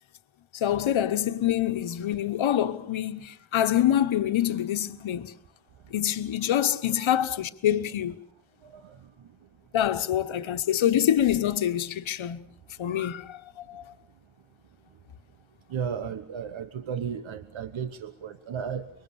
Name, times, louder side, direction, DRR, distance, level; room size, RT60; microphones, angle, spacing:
voice 1, 0.5-5.3 5.9-8.1 9.7-12.4 12.8-13.4 13.7-13.9, left 11 dB, 85° left, 1.2 m, -26 dB
voice 2, 8.6-9.5 10.4-10.6 15.7-18.9, right 7 dB, 85° right, 1.2 m, -35 dB
25.0 x 23.0 x 6.9 m
cardioid pair, 85°, 46 cm